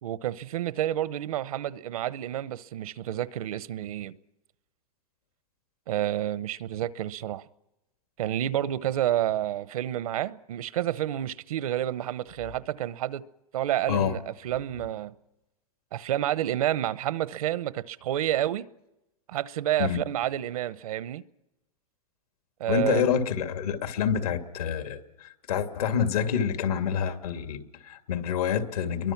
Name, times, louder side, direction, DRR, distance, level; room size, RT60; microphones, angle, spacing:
voice 1, 0.0-4.1 5.9-7.4 8.2-13.2 13.5-15.1 15.9-18.7 19.3-21.2 22.6-23.0, right 12 dB, 75° right, 0.9 m, -29 dB
voice 2, 22.7-29.1, left 8 dB, 90° left, 2.4 m, -27 dB
29.0 x 23.0 x 6.0 m
supercardioid pair, 150°, 19 cm